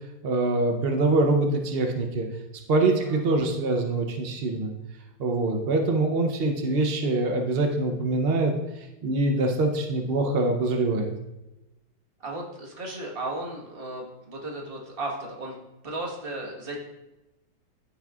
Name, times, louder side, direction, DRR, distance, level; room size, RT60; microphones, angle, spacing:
voice 1, 0.2-2.3 2.7-4.7 5.2-8.5 9.0-11.1, right 2 dB, 80° right, 3 dB, 0.5 m, -24 dB
voice 2, 2.8-3.2 12.2-15.6 15.8-16.8, right 2 dB, 35° right, -2 dB, 1.4 m, -35 dB
13.5 x 5.4 x 2.4 m, 0.98 s
omnidirectional pair, 2.0 m